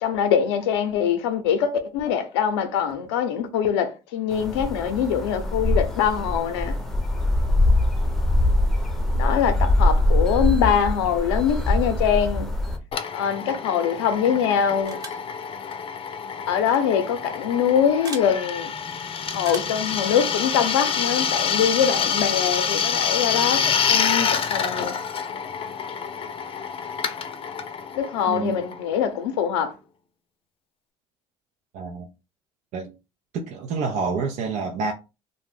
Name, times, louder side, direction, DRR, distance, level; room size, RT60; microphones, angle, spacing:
voice 1, 0.0-6.8 9.1-12.5 13.1-15.0 16.5-18.7 19.3-24.9 28.0-29.7, left 8 dB, 90° left, 0.6 m, -23 dB
sound 1, 4.3-12.8, left 1 dB, ahead, 0.7 m, -22 dB
Drill, 12.9-29.2, left 6 dB, 40° left, 0.5 m, -27 dB
sound 2, 14.9-15.3 16.6-16.8 18.0-18.3 19.4-19.8, right 3 dB, 25° right, 0.9 m, -38 dB
voice 2, 28.3-28.6 31.7-32.1 32.7-32.9 33.3-34.9, right 5 dB, 65° right, 0.5 m, -28 dB
2.5 x 2.1 x 3.4 m
supercardioid pair, 75°, 14 cm